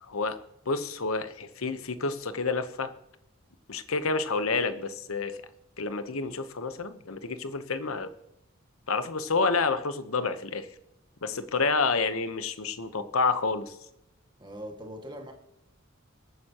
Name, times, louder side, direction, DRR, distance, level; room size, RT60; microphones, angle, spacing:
voice 1, 0.1-0.4 0.7-2.9 3.7-5.4 5.8-8.1 8.9-10.7 11.2-13.8, left 4 dB, 85° left, 11 dB, 1.0 m, -29 dB
voice 2, 14.4-15.3, equal, 20° right, 3 dB, 1.9 m, -41 dB
21.5 x 9.4 x 3.0 m, 0.83 s
head